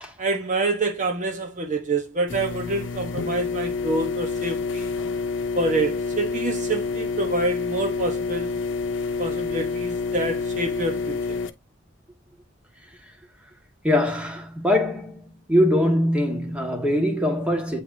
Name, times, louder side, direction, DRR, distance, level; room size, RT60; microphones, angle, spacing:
voice 1, 0.2-4.9 5.5-8.6 9.2-11.4, right 2 dB, 40° right, 1.0 m, -27 dB
sound 1, 2.3-11.5, left 4 dB, 70° left, 0.8 m, -28 dB
voice 2, 13.8-15.2 15.5-17.8, left 1 dB, 5° right, 1.6 m, -22 dB
8.7 x 4.7 x 2.7 m
head